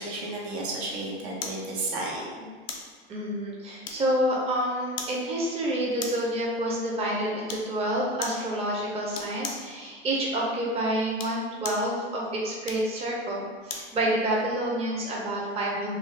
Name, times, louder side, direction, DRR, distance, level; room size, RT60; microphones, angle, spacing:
voice 1, 0.0-2.5, right 2 dB, 75° right, -3 dB, 0.8 m, -33 dB
sound 1, 1.4-1.7 2.7-2.9 3.8-4.3 5.0-5.2 6.0-6.3 7.5-7.7 8.2-8.5 9.1-9.7 11.0-11.9 12.6-13.9 14.4-14.5, left 5 dB, 75° left, 0.6 m, -37 dB
voice 2, 3.1-16.0, right 1 dB, 20° right, -3 dB, 0.6 m, -28 dB
2.5 x 2.3 x 3.1 m, 1.5 s
hypercardioid pair, 100°, 32 cm